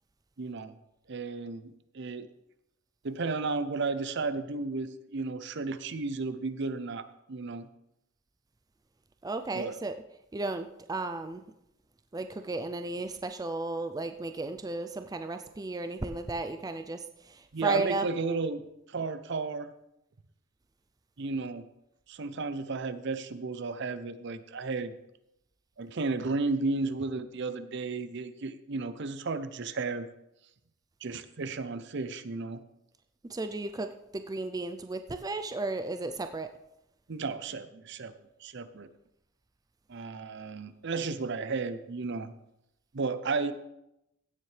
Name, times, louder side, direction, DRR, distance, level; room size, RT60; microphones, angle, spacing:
voice 1, 0.4-0.8 1.1-2.3 3.0-7.7 9.5-9.8 17.5-19.7 21.2-21.7 22.1-25.0 25.8-30.1 31.0-32.6 37.1-38.1 38.4-38.9 39.9-42.3 42.9-43.5, right 3 dB, 60° right, 12 dB, 0.6 m, -33 dB
voice 2, 9.2-10.0 10.3-11.4 12.1-18.1 33.3-36.5, right 2 dB, 20° right, 8 dB, 0.4 m, -34 dB
16.0 x 7.4 x 3.3 m, 0.84 s
head